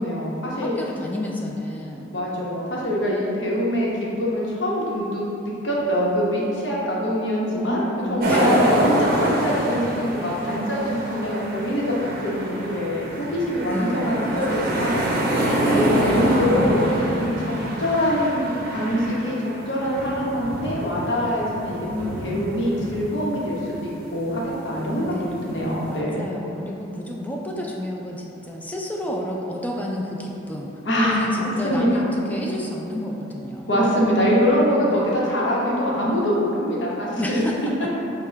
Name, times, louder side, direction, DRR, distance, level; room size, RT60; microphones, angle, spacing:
voice 1, 0.0-0.8 2.1-3.9 4.2-5.2 5.6-11.9 12.2-15.1 15.6-17.5 17.8-25.1 25.4-26.3 30.8-31.3 31.6-32.1 33.7-37.4, equal, 70° left, -5 dB, 0.9 m, -24 dB
voice 2, 0.5-2.1 7.6-8.8 13.7-15.1 21.8-22.5 25.1-25.4 25.9-30.7 31.0-33.7 34.9-35.2 37.2-37.9, left 1 dB, 10° left, -2 dB, 0.3 m, -30 dB
sound 1, 8.2-24.0 24.2-26.0, right 1 dB, 50° right, 0.6 m, -26 dB
5.3 x 2.2 x 4.6 m, 2.9 s
head